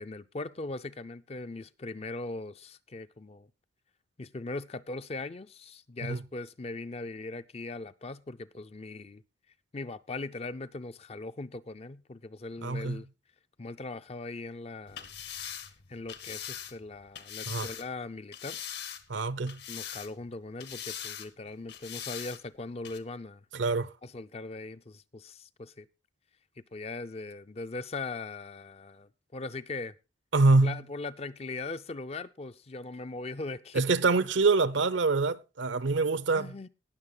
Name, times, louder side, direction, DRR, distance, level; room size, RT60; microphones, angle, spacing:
voice 1, 0.0-3.5 4.2-9.2 9.7-13.1 13.6-15.1 15.9-18.6 19.7-23.4 24.0-25.9 26.7-30.0 30.6-33.9 36.3-36.7, left 3 dB, 30° left, 0.5 m, -40 dB
voice 2, 12.6-13.0 17.5-17.7 19.1-19.6 23.5-23.9 30.3-30.8 33.7-36.7, right 3 dB, 65° right, 0.7 m, -25 dB
sound 1, 14.9-17.9 18.3-19.2 19.5-20.3 20.6-21.3 21.7-22.4 22.8-23.0, left 9 dB, 55° left, 1.2 m, -41 dB
18.5 x 6.6 x 3.9 m
head